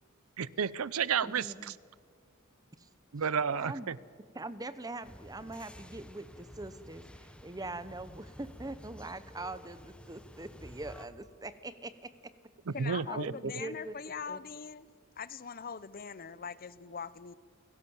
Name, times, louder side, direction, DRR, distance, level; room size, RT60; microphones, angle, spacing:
voice 1, 0.4-1.7 3.1-4.0 12.7-13.5, right 6 dB, 80° right, 0.6 m, -32 dB
voice 2, 1.2-1.7 3.5-3.9 4.3-7.0 7.4-12.1 13.1-14.0 14.3-14.4, right 2 dB, 15° right, 1.0 m, -42 dB
sound 1, 5.0-11.1, equal, 5° left, 1.0 m, -51 dB
voice 3, 12.7-14.9 15.2-17.3, left 6 dB, 45° left, 0.7 m, -42 dB
29.5 x 17.0 x 7.2 m
head